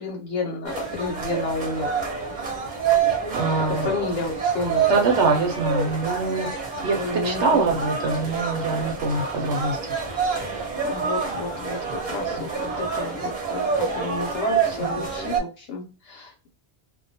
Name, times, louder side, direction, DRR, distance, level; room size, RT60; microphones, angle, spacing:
voice 1, 0.0-1.9 3.7-5.0 7.0-7.6 10.8-16.5, left 3 dB, 85° left, 0 dB, 1.0 m, -31 dB
sound 1, 0.7-15.4, right 6 dB, 45° right, 0.9 m, -27 dB
voice 2, 3.3-3.9 4.9-7.0 7.2-9.8 12.4-12.5 14.8-15.0, right 3 dB, 80° right, 2 dB, 0.9 m, -24 dB
2.3 x 2.2 x 2.6 m, 0.33 s
omnidirectional pair, 1.2 m